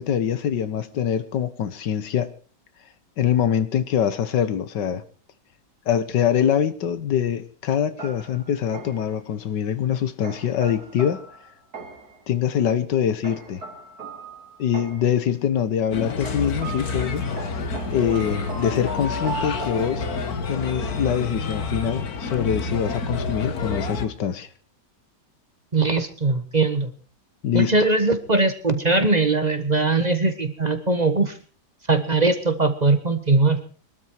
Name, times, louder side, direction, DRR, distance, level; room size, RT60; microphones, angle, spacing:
voice 1, 0.0-2.3 3.2-5.0 5.9-11.2 12.3-13.6 14.6-17.3 17.9-20.1 20.5-24.5 27.4-27.8, left 9 dB, 85° left, 1.8 m, -24 dB
sound 1, 8.0-9.2 10.2-12.2 13.2-15.2 16.2-20.5, right 3 dB, 60° right, 3.4 m, -37 dB
Bird, 15.9-24.1, left 4 dB, 60° left, 1.9 m, -29 dB
voice 2, 25.7-26.9 27.5-31.4 31.9-33.6, right 3 dB, 25° right, 1.4 m, -20 dB
22.5 x 12.5 x 4.6 m
omnidirectional pair, 1.8 m